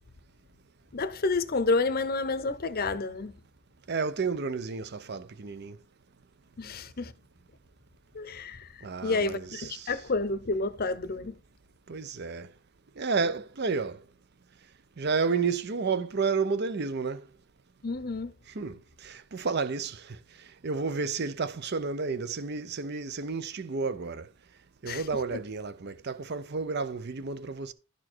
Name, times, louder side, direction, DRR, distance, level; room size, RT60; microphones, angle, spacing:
voice 1, 0.9-3.3 6.6-7.1 8.1-11.3 17.8-18.3 24.9-25.0 25.3-25.4, left 3 dB, 45° left, 0.7 m, -30 dB
voice 2, 3.9-5.8 8.8-9.9 11.9-12.5 13.0-14.0 15.0-17.2 18.6-18.8 19.0-20.0 20.6-24.3 24.8-27.7, right 4 dB, 55° right, 0.7 m, -31 dB
12.0 x 4.4 x 4.4 m
head